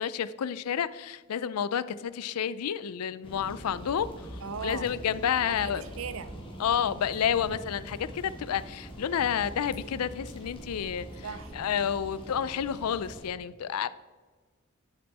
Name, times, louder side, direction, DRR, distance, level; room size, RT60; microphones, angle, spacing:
voice 1, 0.0-4.1 4.6-5.8 6.6-11.1 11.5-13.9, left 8 dB, 90° left, 16 dB, 0.4 m, -30 dB
sound 1, 3.2-13.3, equal, 25° left, 1.8 m, -43 dB
voice 2, 4.4-4.9 5.4-6.4 11.2-11.5, right 6 dB, 70° right, 13 dB, 0.6 m, -38 dB
10.5 x 6.9 x 4.2 m, 1.4 s
head